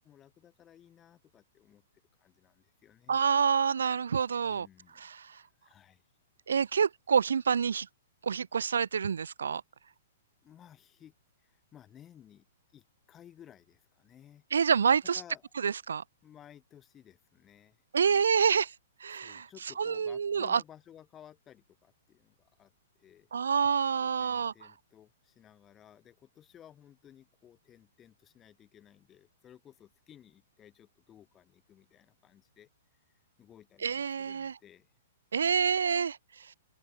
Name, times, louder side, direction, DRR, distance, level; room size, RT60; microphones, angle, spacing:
voice 1, 0.0-1.8 2.2-3.2 4.4-5.0 5.3-6.1 10.4-14.4 15.1-15.4 16.2-17.8 19.2-23.3 24.0-33.1 33.4-35.0, left 10 dB, 20° left, 7.5 m, -57 dB
voice 2, 3.1-4.7 5.0-5.4 6.5-7.9 8.2-9.6 14.5-15.2 15.6-16.0 17.9-18.7 19.0-19.5 19.8-20.6 23.3-24.5 33.8-34.6 35.3-36.5, right 6 dB, 70° right, 0.3 m, -27 dB
open air
figure-of-eight pair, 110°, 0 cm